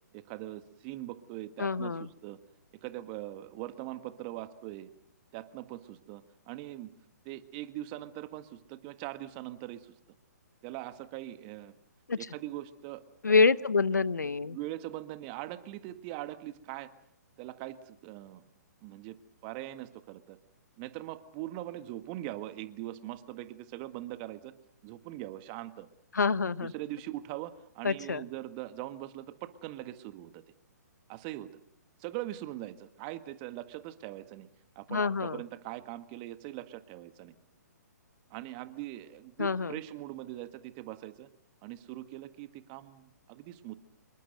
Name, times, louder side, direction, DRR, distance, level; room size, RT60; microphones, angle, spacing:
voice 1, 0.1-2.4 2.8-4.9 5.3-6.9 7.3-9.9 10.6-11.7 12.2-13.0 13.3-13.5 14.4-16.9 17.4-18.4 18.8-19.2 19.4-20.4 20.8-24.5 24.8-25.9 26.6-30.4 31.1-31.5 32.0-34.5 34.8-37.4 38.3-41.3 41.6-43.7, right 15 dB, 30° right, 11 dB, 1.7 m, -41 dB
voice 2, 1.6-2.1 12.1-12.2 13.2-14.6 26.1-26.7 27.8-28.2 34.9-35.4 39.4-39.7, left 4 dB, 75° left, 18 dB, 0.9 m, -26 dB
27.5 x 23.0 x 6.6 m, 0.73 s
figure-of-eight pair, 125°, 9 cm